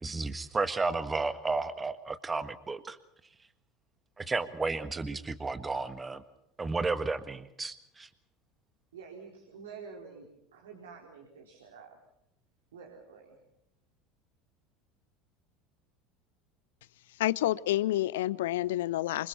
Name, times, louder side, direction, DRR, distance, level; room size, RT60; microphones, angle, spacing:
voice 1, 0.0-3.0 4.2-6.2 6.6-8.1, right 3 dB, 20° right, 11 dB, 1.6 m, -32 dB
voice 2, 8.9-12.0 12.7-13.4, right 5 dB, 70° right, 0 dB, 4.4 m, -48 dB
voice 3, 17.2-19.3, left 14 dB, 65° left, 21 dB, 0.7 m, -29 dB
27.5 x 25.5 x 4.3 m, 0.79 s
figure-of-eight pair, 70°, 0 cm